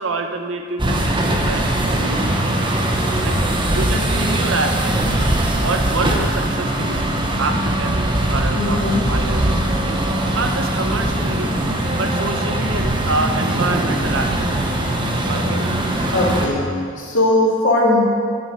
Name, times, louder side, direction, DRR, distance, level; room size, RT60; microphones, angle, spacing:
voice 1, 0.0-1.6 1.9-2.3 3.2-3.4 3.7-5.0 5.6-7.0 7.4-10.0 10.3-11.5 11.9-14.5 15.3-15.7, right 3 dB, 90° right, 5 dB, 1.0 m, -26 dB
sound 1, 0.8-16.5, right 1 dB, 25° right, 1.1 m, -20 dB
voice 2, 8.5-9.1 16.1-16.6 16.9-18.0, left 1 dB, 80° left, -5 dB, 3.0 m, -18 dB
10.0 x 6.4 x 8.2 m, 2.2 s
head